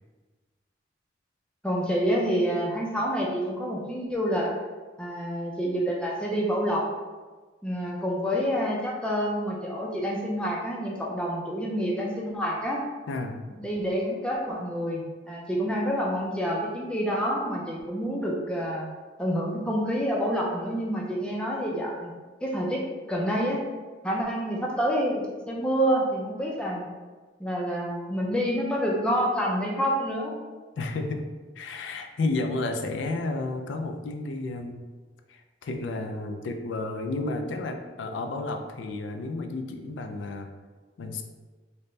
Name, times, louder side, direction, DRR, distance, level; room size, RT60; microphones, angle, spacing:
voice 1, 1.6-4.5 5.0-6.8 7.6-12.8 13.6-18.9 19.2-22.1 22.4-23.6 24.0-26.9 27.4-30.4, equal, 5° left, -3 dB, 0.5 m, -28 dB
voice 2, 13.1-13.5 30.8-31.3 31.6-34.8 35.3-40.5 41.0-41.2, left 2 dB, 85° left, 6 dB, 0.4 m, -32 dB
4.1 x 2.2 x 3.1 m, 1.3 s
head